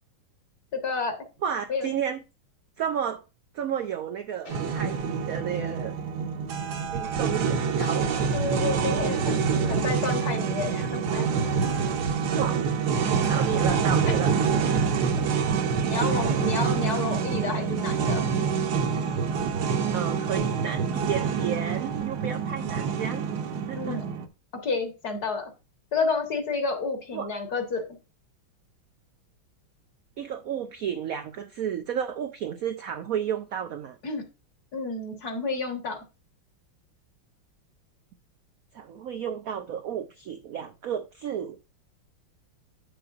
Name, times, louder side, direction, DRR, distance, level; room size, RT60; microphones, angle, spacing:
voice 1, 0.7-1.2 1.7-1.9 8.3-11.3 15.2-15.6 15.9-18.3 23.7-24.0 24.5-25.5 25.9-27.9 34.0-34.2 34.7-36.0, left 4 dB, 50° left, 1.8 m, -30 dB
voice 2, 1.4-2.2 2.8-3.2 3.5-5.9 6.9-8.1 12.3-12.6 13.0-14.3 19.9-23.3 23.7-24.0 27.1-27.3 30.2-34.0 38.7-41.6, right 8 dB, 85° right, 0.7 m, -32 dB
sound 1, 4.1-6.4 7.5-11.2, left 4 dB, 70° left, 2.5 m, -48 dB
sound 2, 4.5-24.3, right 6 dB, 60° right, 1.3 m, -26 dB
8.8 x 6.7 x 2.4 m
omnidirectional pair, 2.2 m